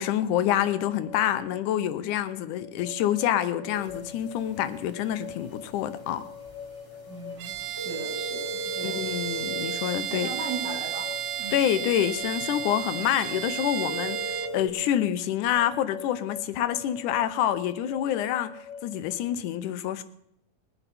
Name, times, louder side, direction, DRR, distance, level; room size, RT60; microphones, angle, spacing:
voice 1, 0.0-6.3 8.8-10.3 11.5-20.0, left 11 dB, 85° left, 2.3 m, -27 dB
sound 1, 0.6-19.3, left 6 dB, 55° left, 2.3 m, -44 dB
sound 2, 3.7-14.7, equal, 10° left, 2.9 m, -41 dB
voice 2, 7.1-9.0 10.1-11.1 11.4-11.6, right 3 dB, 65° right, 3.0 m, -37 dB
Bowed string instrument, 7.4-14.6, right 12 dB, 85° right, 1.3 m, -33 dB
21.5 x 9.9 x 4.2 m
omnidirectional pair, 3.6 m